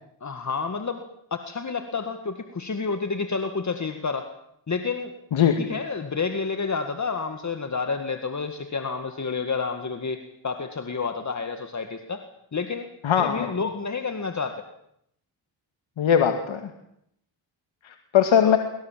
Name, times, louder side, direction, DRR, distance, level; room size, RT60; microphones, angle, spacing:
voice 1, 0.2-4.3 4.7-5.2 5.6-12.2 12.5-12.9 13.1-14.6 18.4-18.6, left 4 dB, 35° left, 7 dB, 2.0 m, -30 dB
voice 2, 13.0-13.5 16.0-16.7 17.8-18.6, left 8 dB, 75° left, 6 dB, 2.2 m, -20 dB
25.0 x 24.0 x 7.6 m, 0.75 s
cardioid pair, 70°, 48 cm